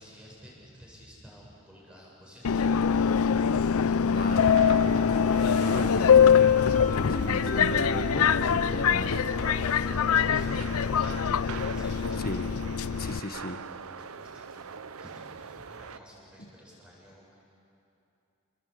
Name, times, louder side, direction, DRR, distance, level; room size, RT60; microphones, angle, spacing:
voice 1, 0.0-4.7 10.1-12.9 14.0-17.4, equal, 5° right, -5 dB, 7.8 m, -51 dB
Subway metro underground, 2.4-13.2, left 7 dB, 85° left, 0.5 m, -23 dB
voice 2, 4.1-4.5 5.0-9.2 12.2-12.5 13.0-13.6 16.4-16.5, left 1 dB, 45° left, 7 dB, 1.5 m, -36 dB
sound 1, 4.1-16.0, right 6 dB, 80° right, 0.7 m, -43 dB
sound 2, 6.1-13.7, right 1 dB, 65° left, 3.1 m, -39 dB
29.5 x 21.5 x 8.7 m, 2.7 s
head